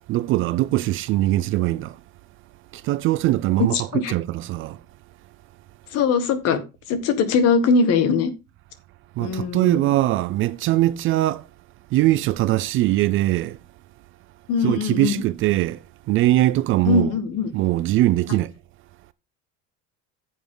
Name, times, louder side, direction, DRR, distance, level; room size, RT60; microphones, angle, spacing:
voice 1, 0.1-2.0 2.7-4.8 9.2-11.5 11.9-13.6 14.6-17.1 17.5-18.5, right 16 dB, 40° right, 0.4 m, -21 dB
voice 2, 3.6-4.1 5.9-6.6 6.9-8.3 9.2-9.9 14.5-15.2 16.8-17.5, left 5 dB, 50° left, 1.6 m, -21 dB
9.5 x 7.2 x 3.8 m
cardioid pair, 170°, 32 cm